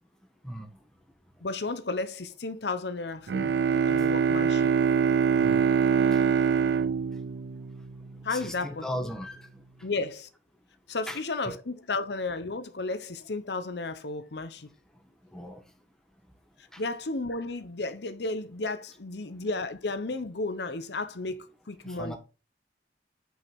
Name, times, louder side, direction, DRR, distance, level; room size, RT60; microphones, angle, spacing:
voice 1, 1.4-4.7 8.2-8.8 9.8-10.3 10.9-14.7 16.8-22.2, left 3 dB, 75° left, 0.9 m, -33 dB
Bowed string instrument, 3.3-8.2, right 6 dB, 75° right, 0.4 m, -24 dB
voice 2, 8.3-9.5 11.1-11.6 15.3-15.6 16.7-16.8 21.8-22.2, equal, 5° left, 1.5 m, -37 dB
8.9 x 5.6 x 3.6 m
head